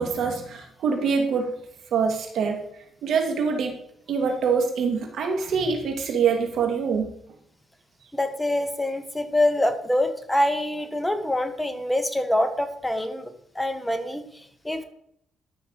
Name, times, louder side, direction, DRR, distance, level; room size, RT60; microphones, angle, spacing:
voice 1, 0.0-1.5 1.9-2.6 3.0-3.7 4.1-7.0, right 5 dB, 70° right, 3 dB, 2.3 m, -24 dB
voice 2, 8.1-13.3 13.5-14.8, left 1 dB, 10° left, 7 dB, 1.4 m, -25 dB
12.5 x 5.9 x 4.9 m, 0.70 s
cardioid pair, 90°, 0 cm